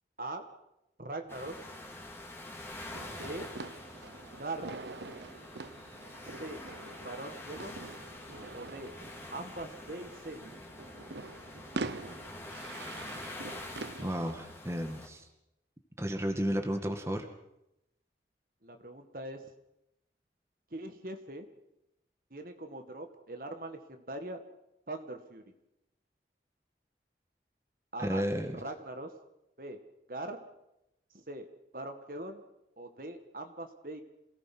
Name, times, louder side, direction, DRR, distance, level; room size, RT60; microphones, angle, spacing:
voice 1, 1.0-1.6 3.2-3.5 4.4-4.7 6.3-6.6 7.0-7.8 8.5-8.9 9.3-10.4 18.6-19.5 20.7-21.5 22.3-24.4 24.9-25.4 27.9-28.3 28.5-29.1 29.6-29.8 30.1-30.4 31.3-31.5 31.7-32.4 32.8-34.0, right 2 dB, 50° right, 6 dB, 1.8 m, -41 dB
sound 1, 1.3-15.1, left 1 dB, 15° left, 3.3 m, -46 dB
sound 2, 2.9-14.3, right 3 dB, 75° right, 0.9 m, -45 dB
voice 2, 14.0-15.3 16.0-17.3 28.0-28.6, equal, 15° right, 4 dB, 1.9 m, -33 dB
27.5 x 18.0 x 6.1 m, 0.87 s
head